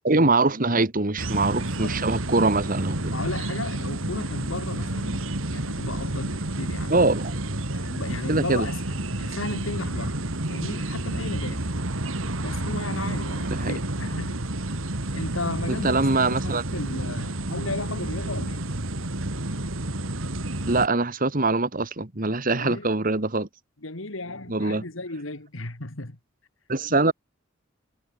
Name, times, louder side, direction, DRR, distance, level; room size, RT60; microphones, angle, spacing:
voice 1, 0.0-3.1 6.9-7.4 8.3-8.7 13.5-13.8 15.8-16.6 20.7-23.5 24.5-24.8 26.7-27.1, right 3 dB, 40° right, 1.8 m, -23 dB
sound 1, 1.2-20.9, right 1 dB, 80° right, 2.6 m, -30 dB
voice 2, 1.5-2.0 3.1-5.2 5.5-7.0 7.7-10.2 10.5-11.7 12.4-14.4 15.1-18.6 22.5-22.9 23.8-26.2 26.9-27.1, left 2 dB, 75° left, 2.6 m, -35 dB
head